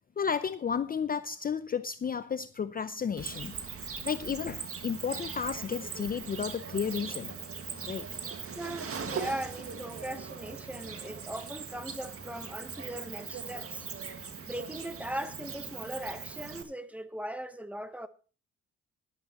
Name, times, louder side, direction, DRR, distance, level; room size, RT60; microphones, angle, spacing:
voice 1, 0.2-3.5 4.0-7.4 7.8-8.1, left 7 dB, 30° left, 0.5 m, -32 dB
Cricket, 3.2-16.6, right 6 dB, 50° right, 1.9 m, -40 dB
voice 2, 8.5-13.9 14.5-18.1, right 1 dB, 5° right, 1.0 m, -39 dB
16.0 x 11.5 x 3.0 m
cardioid pair, 90°, 30 cm